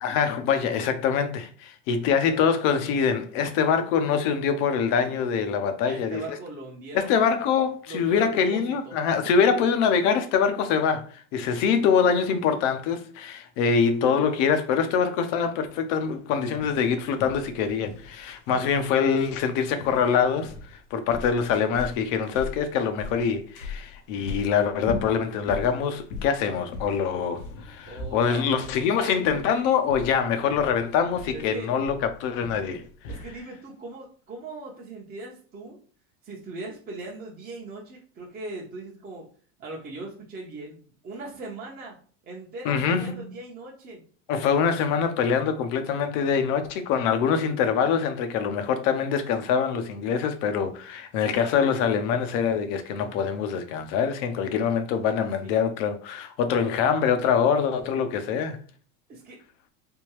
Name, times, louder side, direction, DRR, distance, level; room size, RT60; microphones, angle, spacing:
voice 1, 0.0-6.4 6.9-32.9 42.6-43.3 44.3-58.6, left 6 dB, 60° left, 0.7 m, -24 dB
voice 2, 5.8-7.2 7.9-9.0 9.2-9.3 27.9-28.5 29.0-29.7 31.3-31.9 33.1-35.8 36.2-39.3 39.6-42.0 42.2-44.0 55.4-55.7 59.1-59.4, right 2 dB, 20° right, 0.8 m, -40 dB
sound 1, 16.5-33.4, left 3 dB, 80° left, 0.9 m, -40 dB
3.5 x 2.2 x 3.0 m
supercardioid pair, 105°, 42 cm